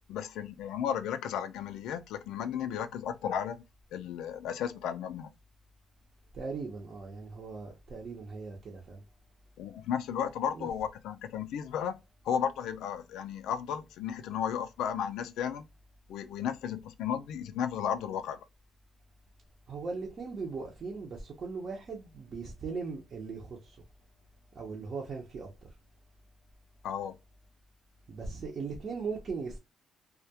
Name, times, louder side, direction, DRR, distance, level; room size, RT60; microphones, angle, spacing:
voice 1, 0.1-3.6 3.9-5.3 9.6-12.0 12.2-15.7 16.1-18.4 26.8-27.2, left 8 dB, 85° left, 0.3 m, -34 dB
voice 2, 6.3-9.0 10.5-10.7 19.7-23.8 24.5-25.7 28.1-29.6, right 4 dB, 50° right, 0.7 m, -39 dB
2.2 x 2.1 x 2.7 m
cardioid pair, 90°, 0 cm